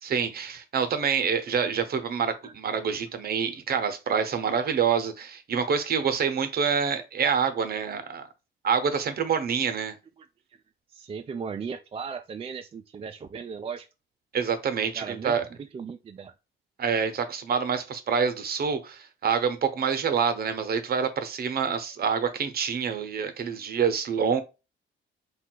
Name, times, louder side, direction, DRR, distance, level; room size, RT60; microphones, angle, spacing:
voice 1, 0.0-8.3 8.6-9.9 14.3-15.4 16.8-24.4, right 6 dB, 50° right, 0.8 m, -27 dB
voice 2, 10.9-13.9 14.9-16.3, right 6 dB, 30° right, 0.3 m, -37 dB
3.5 x 2.3 x 4.4 m
cardioid pair, 90°, 20 cm